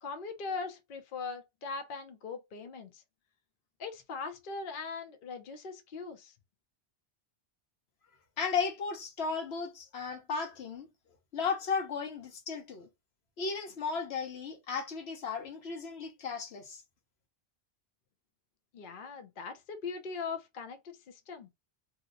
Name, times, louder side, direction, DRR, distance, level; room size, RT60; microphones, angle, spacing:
voice 1, 0.0-3.0 3.8-6.3 18.7-21.5, left 4 dB, 60° left, 0.8 m, -40 dB
voice 2, 8.4-10.9 11.3-12.9 13.4-16.8, left 5 dB, 80° left, 1.0 m, -35 dB
2.8 x 2.1 x 3.7 m
omnidirectional pair, 1.1 m